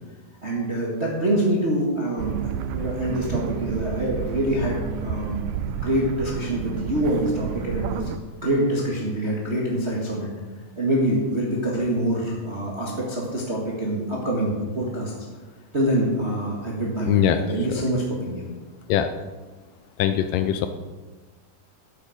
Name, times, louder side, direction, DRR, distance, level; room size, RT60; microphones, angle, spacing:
voice 1, 0.4-2.4 2.7-5.5 5.8-8.1 8.4-10.3 10.8-15.1 15.7-18.4, right 1 dB, 35° right, -4 dB, 1.1 m, -25 dB
sound 1, 2.2-8.2, right 8 dB, 80° right, 1.9 m, -30 dB
voice 2, 17.1-17.4 18.9-19.1 20.0-20.7, left 11 dB, 80° left, 9 dB, 2.0 m, -21 dB
12.5 x 8.2 x 5.0 m, 1.3 s
omnidirectional pair, 4.2 m